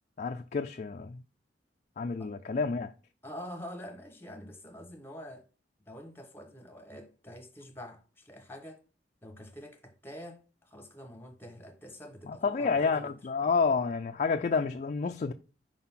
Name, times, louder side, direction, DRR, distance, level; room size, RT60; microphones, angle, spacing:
voice 1, 0.2-1.2 2.0-2.9 12.3-15.3, left 5 dB, 45° left, 0.4 m, -29 dB
voice 2, 3.2-5.5 5.9-8.8 9.2-13.1, equal, 15° left, 1.0 m, -46 dB
5.1 x 3.8 x 5.6 m
head